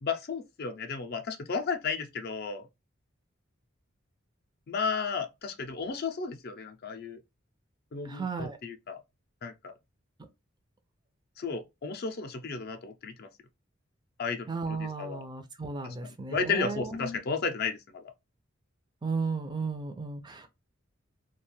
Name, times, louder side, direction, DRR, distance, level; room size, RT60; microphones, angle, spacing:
voice 1, 0.0-2.7 4.7-7.2 7.9-9.0 9.4-9.7 11.4-13.3 14.2-15.2 15.8-18.1, left 5 dB, 50° left, 0.5 m, -33 dB
voice 2, 8.1-8.6 14.5-17.2 19.0-20.5, right 4 dB, 20° right, 0.4 m, -34 dB
2.4 x 2.2 x 3.0 m
head